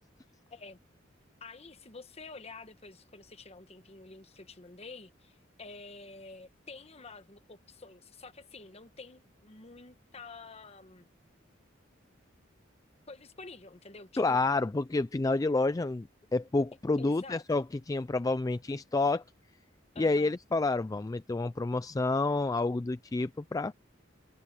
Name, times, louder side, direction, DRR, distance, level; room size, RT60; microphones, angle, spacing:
voice 1, 1.4-11.1 13.1-14.5 17.0-17.4 19.9-20.3, left 3 dB, 35° left, 1.3 m, -49 dB
voice 2, 14.2-19.2 20.0-23.7, left 3 dB, 20° left, 0.4 m, -29 dB
head